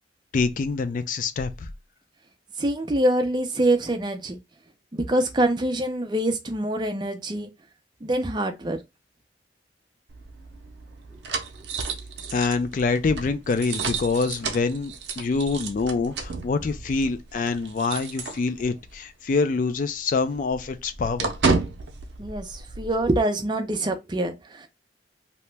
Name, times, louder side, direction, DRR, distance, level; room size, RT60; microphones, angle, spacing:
voice 1, 0.3-1.7 12.3-21.3, left 4 dB, 45° left, 0.3 m, -25 dB
voice 2, 2.6-4.4 4.9-7.5 8.0-8.8 22.2-24.7, right 1 dB, 25° right, 0.5 m, -25 dB
sound 1, 10.1-18.9 19.2-19.4 19.7-23.2, right 4 dB, 80° right, 0.6 m, -32 dB
2.9 x 2.1 x 3.2 m
head